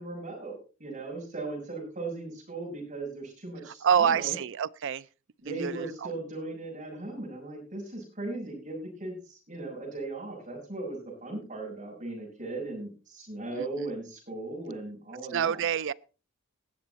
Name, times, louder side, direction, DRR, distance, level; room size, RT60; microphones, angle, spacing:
voice 1, 0.0-4.4 5.4-15.7, right 2 dB, 35° right, 6.9 m, -38 dB
voice 2, 3.8-5.0 5.5-6.1 13.6-13.9 15.3-15.9, right 8 dB, 60° right, 0.5 m, -27 dB
19.0 x 7.2 x 4.1 m
head